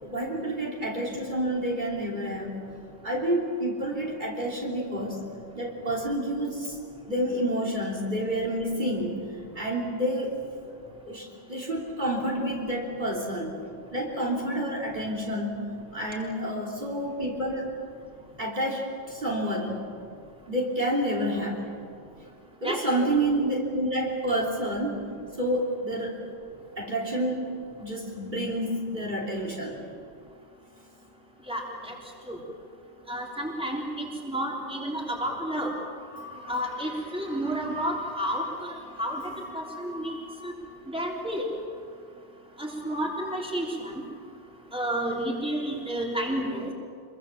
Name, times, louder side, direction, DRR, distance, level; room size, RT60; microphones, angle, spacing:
voice 1, 0.0-2.7 3.0-5.3 5.6-6.7 7.0-9.2 9.6-10.4 11.1-13.6 13.9-17.7 18.4-19.8 20.5-21.6 22.6-25.1 25.4-26.2 26.8-27.4 27.8-29.8, right 1 dB, 45° right, -1 dB, 3.5 m, -29 dB
voice 2, 31.5-31.9 32.3-32.4 33.1-35.7 36.1-40.5 40.9-41.5 42.6-44.0 44.7-46.7, equal, 5° right, -2 dB, 3.4 m, -31 dB
26.0 x 22.5 x 7.3 m, 2.3 s
omnidirectional pair, 1.2 m